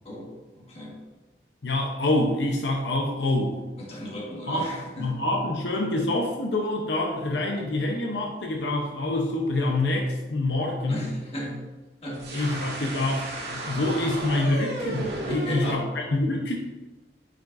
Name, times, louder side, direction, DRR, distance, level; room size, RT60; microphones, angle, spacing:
voice 1, 0.0-1.0 3.8-5.1 7.3-7.7 10.9-11.7 12.0-12.6 13.7-13.8 15.2-15.8, left 1 dB, 35° left, -2 dB, 1.5 m, -36 dB
voice 2, 1.6-3.5 4.5-4.6 5.0-11.1 12.3-16.5, left 2 dB, 80° left, 1 dB, 0.8 m, -26 dB
sound 1, 12.1-15.7, right 1 dB, 70° right, 1.7 m, -33 dB
9.3 x 5.1 x 2.6 m, 1.2 s
head